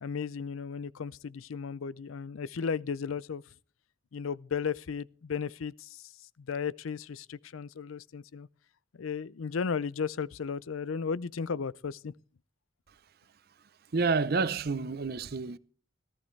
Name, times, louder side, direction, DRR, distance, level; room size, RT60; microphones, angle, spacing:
voice 1, 0.0-3.4 4.1-6.0 6.4-8.5 9.0-12.1, left 6 dB, 85° left, 0.5 m, -35 dB
voice 2, 13.9-15.6, right 4 dB, 50° right, 0.6 m, -29 dB
18.0 x 13.0 x 3.2 m
head